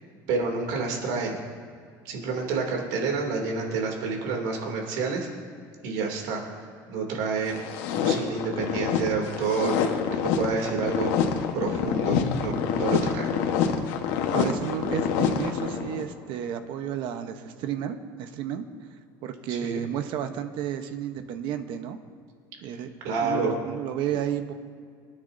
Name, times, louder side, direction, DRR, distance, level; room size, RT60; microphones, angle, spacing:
voice 1, 0.3-1.4 2.0-5.3 5.8-6.6 6.9-7.6 7.9-10.0 10.4-11.1 11.5-13.3 19.5-19.8 23.0-23.6, right 4 dB, 85° right, 1 dB, 2.8 m, -29 dB
sound 1, 7.5-16.1, left 7 dB, 85° left, 1.3 m, -26 dB
voice 2, 14.3-18.7 19.2-22.0 22.6-22.9 23.2-24.5, right 9 dB, 65° right, 8 dB, 1.0 m, -32 dB
24.5 x 9.5 x 2.7 m, 2.2 s
cardioid pair, 140°, 9 cm